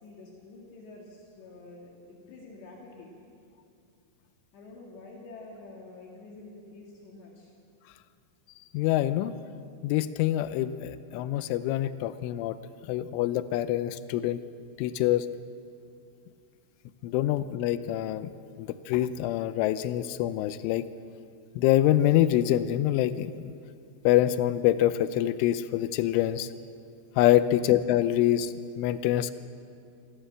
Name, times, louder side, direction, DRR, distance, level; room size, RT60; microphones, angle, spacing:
voice 1, 0.0-3.1 4.5-7.5, left 3 dB, 65° left, -2 dB, 4.2 m, -48 dB
voice 2, 8.7-9.4 9.8-12.6 12.9-14.4 14.8-15.3 17.0-18.3 18.6-20.9 21.6-23.3 24.1-26.5 27.2-29.3, left 13 dB, 90° left, 13 dB, 3.1 m, -25 dB
27.5 x 13.0 x 7.8 m, 2.4 s
omnidirectional pair, 5.5 m